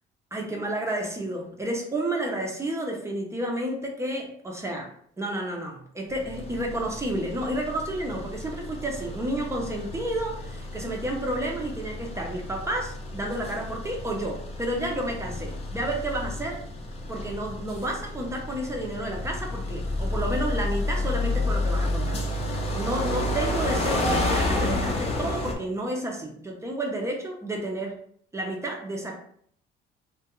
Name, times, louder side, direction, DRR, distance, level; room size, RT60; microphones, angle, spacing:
voice 1, 0.3-4.9 5.2-16.6 17.1-22.2 22.7-27.9 28.3-29.2, right 1 dB, 15° right, 0 dB, 0.5 m, -31 dB
sound 1, 6.1-25.5, left 2 dB, 35° left, 0.5 m, -30 dB
2.3 x 2.1 x 2.9 m, 0.63 s
cardioid pair, 110°, 17 cm